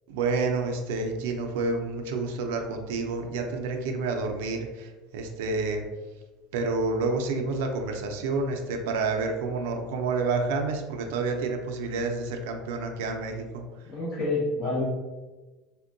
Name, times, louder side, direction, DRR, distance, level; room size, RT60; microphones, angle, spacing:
voice 1, 0.1-4.9 5.1-5.8 6.5-13.6, right 3 dB, 80° right, 3 dB, 0.4 m, -29 dB
voice 2, 13.8-14.8, left 2 dB, 40° left, -8 dB, 0.8 m, -28 dB
3.5 x 2.2 x 2.5 m, 1.2 s
cardioid pair, 165°, 0 cm